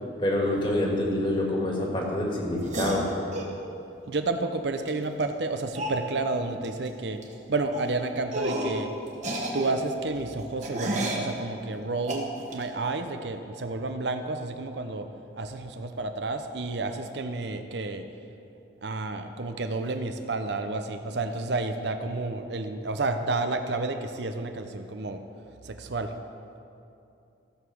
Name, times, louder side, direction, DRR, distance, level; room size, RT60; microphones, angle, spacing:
voice 1, 0.2-3.1, left 1 dB, 25° left, -1 dB, 1.8 m, -26 dB
sound 1, 2.6-3.5 4.9-5.0 5.2-5.3 5.8-6.0 6.6-6.9 7.1-7.3 7.7-7.9 8.3-8.8 9.1-11.3 12.0-12.6, right 1 dB, 40° right, 1.5 m, -31 dB
voice 2, 4.1-7.2 7.5-8.9 9.5-15.1 15.4-18.0 18.8-25.2 25.6-26.1, right 3 dB, 65° right, 7 dB, 0.7 m, -30 dB
14.5 x 7.0 x 6.3 m, 2.7 s
head